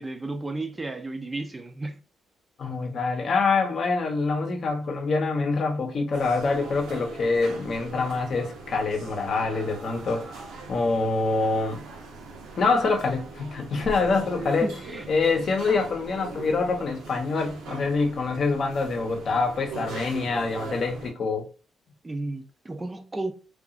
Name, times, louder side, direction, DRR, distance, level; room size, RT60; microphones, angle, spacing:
voice 1, 0.0-2.0 14.0-14.2 14.6-15.1 22.0-23.3, right 2 dB, 20° right, 0.3 m, -33 dB
voice 2, 2.6-10.3 10.7-11.8 12.6-14.7 15.1-21.5, left 4 dB, 55° left, 0.7 m, -25 dB
sound 1, 6.1-21.1, right 3 dB, 85° right, 0.6 m, -40 dB
2.7 x 2.3 x 2.4 m
cardioid pair, 90°, 0 cm